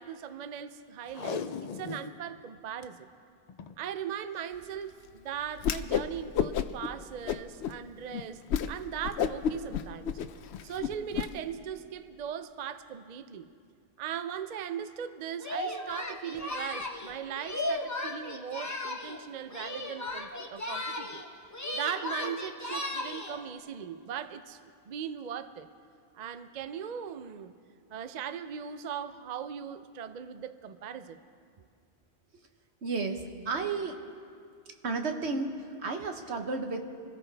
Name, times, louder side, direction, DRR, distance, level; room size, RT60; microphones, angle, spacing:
voice 1, 0.0-3.1 3.8-8.4 8.7-10.2 10.6-13.5 14.0-21.2 21.7-24.6 24.9-25.7 26.1-27.5 27.9-31.2, right 8 dB, 50° right, 11 dB, 0.6 m, -39 dB
Packing tape duct tape, 1.1-2.2 2.6-2.9 3.5-3.8 4.8-5.1 5.6-5.7, left 6 dB, 50° left, 0.5 m, -38 dB
Whoosh swoosh swish, 5.6-6.1 6.3-6.9 7.3-7.7 8.1-8.2 8.5-8.7 9.0-11.3, left 9 dB, 80° left, 0.9 m, -30 dB
Singing, 15.4-19.2 19.5-21.3 21.5-23.4, left 1 dB, 15° left, 0.9 m, -36 dB
voice 2, 32.8-34.1 34.8-36.8, right 4 dB, 80° right, 5 dB, 1.4 m, -33 dB
25.5 x 14.5 x 3.4 m, 2.3 s
omnidirectional pair, 1.1 m